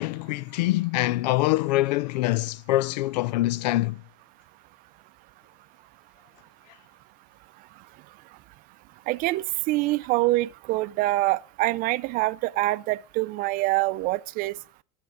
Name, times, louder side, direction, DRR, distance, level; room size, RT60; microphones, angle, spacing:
voice 1, 0.0-4.0, left 17 dB, 85° left, 0.5 m, -24 dB
voice 2, 9.1-14.6, right 19 dB, 45° right, 0.6 m, -25 dB
11.0 x 8.1 x 6.2 m
supercardioid pair, 150°, 21 cm